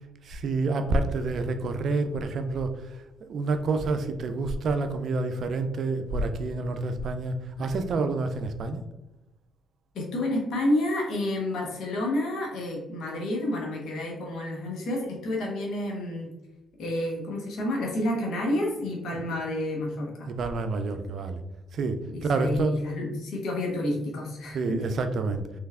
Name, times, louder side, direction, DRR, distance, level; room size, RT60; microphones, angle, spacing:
voice 1, 0.2-8.8 19.1-19.2 20.3-21.4 21.7-22.7 24.5-25.6, right 3 dB, 60° right, 8 dB, 0.4 m, -28 dB
voice 2, 9.9-16.3 16.8-20.3 22.1-24.8, left 1 dB, 70° left, -1 dB, 0.9 m, -29 dB
3.2 x 3.1 x 2.3 m, 0.94 s
hypercardioid pair, 50°, 0 cm